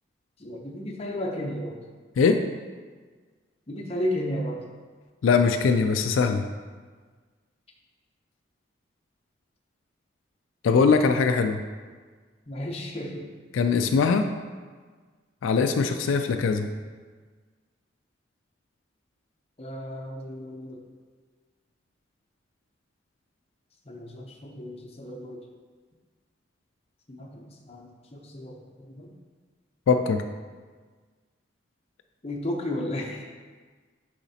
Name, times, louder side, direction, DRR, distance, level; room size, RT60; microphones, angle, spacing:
voice 1, 0.4-1.8 3.7-4.6 12.5-13.3 19.6-20.8 23.9-25.4 27.1-28.5 28.9-29.1 32.2-33.3, left 1 dB, 30° left, 0 dB, 0.7 m, -33 dB
voice 2, 5.2-6.5 10.6-11.6 13.5-14.3 15.4-16.7 29.9-30.2, left 5 dB, 80° left, 6 dB, 0.3 m, -21 dB
7.0 x 5.0 x 2.8 m, 1.5 s
head